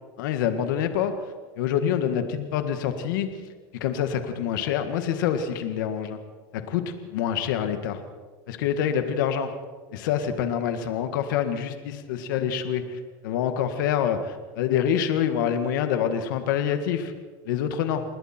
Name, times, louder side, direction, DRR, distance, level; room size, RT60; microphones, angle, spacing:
voice 1, 0.2-1.1 1.6-3.3 3.7-6.2 6.5-8.0 8.5-9.5 9.9-17.1 17.5-18.0, left 9 dB, 80° left, 7 dB, 1.8 m, -26 dB
29.0 x 21.0 x 4.5 m, 1.4 s
supercardioid pair, 115°, 10 cm